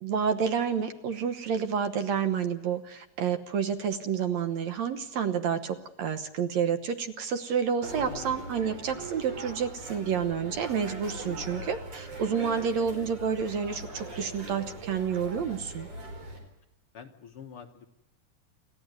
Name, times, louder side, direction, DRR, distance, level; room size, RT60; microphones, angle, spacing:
voice 1, 0.0-15.9, right 7 dB, 65° right, 8 dB, 2.2 m, -29 dB
sound 1, 7.8-16.4, right 2 dB, 50° right, 5.3 m, -41 dB
voice 2, 8.0-8.5 11.5-11.8 16.9-17.9, left 7 dB, 55° left, 4 dB, 1.9 m, -46 dB
28.5 x 14.0 x 9.5 m, 0.97 s
omnidirectional pair, 3.6 m